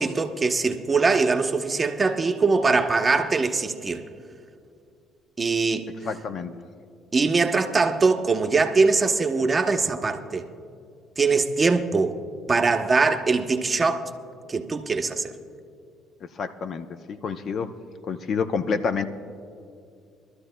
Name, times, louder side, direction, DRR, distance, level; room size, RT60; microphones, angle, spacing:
voice 1, 0.0-4.0 5.4-5.9 7.1-10.5 11.2-12.2 12.5-14.1 14.5-15.3, right 4 dB, 25° right, 0.8 m, -22 dB
voice 2, 6.0-6.6 16.3-17.7 18.1-19.1, left 5 dB, 50° left, 0.6 m, -28 dB
24.0 x 13.0 x 2.2 m
supercardioid pair, 90°, 0 cm